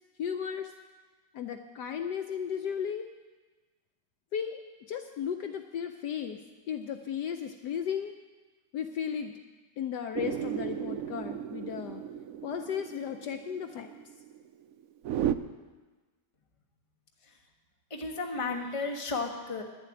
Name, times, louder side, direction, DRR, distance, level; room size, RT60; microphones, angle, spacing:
voice 1, 0.2-0.7 1.3-3.1 4.3-4.6 4.9-6.4 6.7-8.2 8.7-9.3 9.8-12.0 12.4-13.9, left 8 dB, 70° left, 6 dB, 1.1 m, -35 dB
sound 1, 10.1-15.3, right 10 dB, 85° right, 0.7 m, -35 dB
voice 2, 17.9-19.6, left 3 dB, 20° left, 2 dB, 1.1 m, -33 dB
10.5 x 7.5 x 9.7 m, 1.3 s
omnidirectional pair, 2.0 m